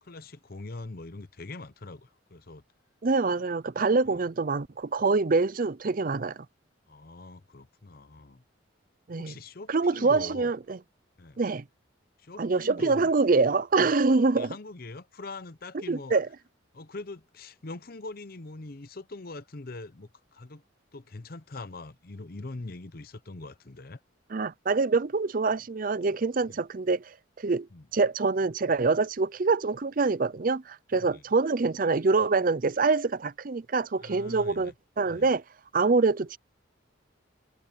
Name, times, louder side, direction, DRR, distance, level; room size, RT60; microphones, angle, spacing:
voice 1, 0.0-2.6 4.0-4.2 6.9-8.4 9.2-10.5 11.2-11.4 12.2-13.1 14.3-16.1 16.7-20.6 20.9-24.0 26.5-26.6 27.7-27.9 30.9-31.2 34.0-34.7 35.1-35.3, left 2 dB, 45° left, 0.8 m, -42 dB
voice 2, 3.0-6.5 9.1-9.3 9.7-10.8 11.4-11.6 12.4-14.5 15.9-16.3 24.3-27.7 27.9-35.4 35.7-36.4, right 4 dB, 45° right, 0.5 m, -25 dB
head